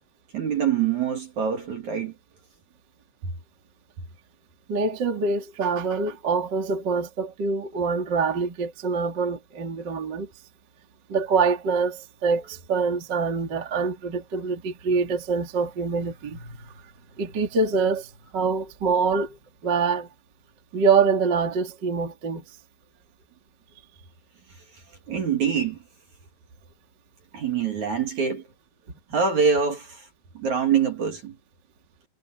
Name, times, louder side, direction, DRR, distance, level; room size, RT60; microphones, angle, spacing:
voice 1, 0.3-2.1 25.1-25.8 27.3-28.4 29.1-30.0 30.3-31.3, right 7 dB, 45° right, 3.1 m, -24 dB
voice 2, 4.7-10.3 11.1-16.7 17.2-19.4 19.6-20.1 20.7-22.4, right 4 dB, 30° right, 2.4 m, -25 dB
omnidirectional pair, 5.6 m